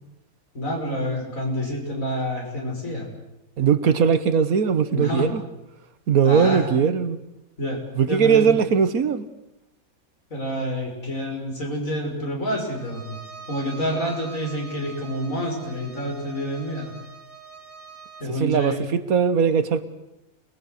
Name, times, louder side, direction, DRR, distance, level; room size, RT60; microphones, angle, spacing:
voice 1, 0.5-3.1 4.9-5.3 6.2-6.6 7.6-7.8 8.1-8.6 10.3-13.2 13.5-16.9 18.2-18.8, equal, 65° left, 0 dB, 6.3 m, -28 dB
voice 2, 3.6-5.4 6.1-7.2 8.0-9.3 18.3-19.8, right 6 dB, 75° right, 12 dB, 1.6 m, -20 dB
Bowed string instrument, 12.7-18.3, right 5 dB, 60° right, 3.9 m, -44 dB
29.0 x 20.5 x 6.6 m, 0.90 s
omnidirectional pair, 1.5 m